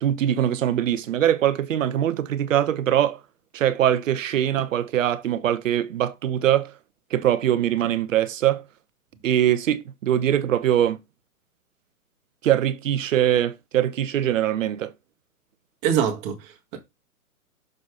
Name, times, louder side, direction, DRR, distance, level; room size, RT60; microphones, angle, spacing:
voice 1, 0.0-3.2 3.5-6.7 7.1-8.6 9.2-11.0 12.4-14.9, right 11 dB, 60° right, 1.0 m, -22 dB
voice 2, 15.8-16.8, right 8 dB, 30° right, 1.8 m, -24 dB
6.7 x 4.1 x 4.8 m
hypercardioid pair, 145°, 45 cm